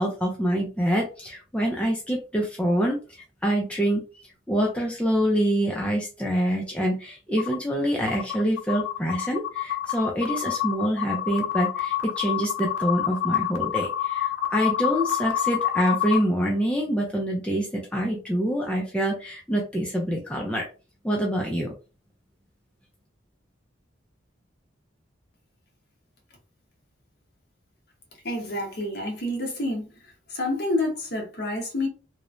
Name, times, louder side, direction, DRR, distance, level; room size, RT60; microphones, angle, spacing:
voice 1, 0.0-4.0 4.5-20.7 21.0-21.7, equal, 5° left, 0.3 m, -26 dB
sound 1, 7.4-7.6 8.1-16.2, left 11 dB, 85° left, 0.5 m, -27 dB
voice 2, 28.2-29.9 30.3-31.9, left 1 dB, 55° left, 0.9 m, -28 dB
3.0 x 2.0 x 2.4 m
head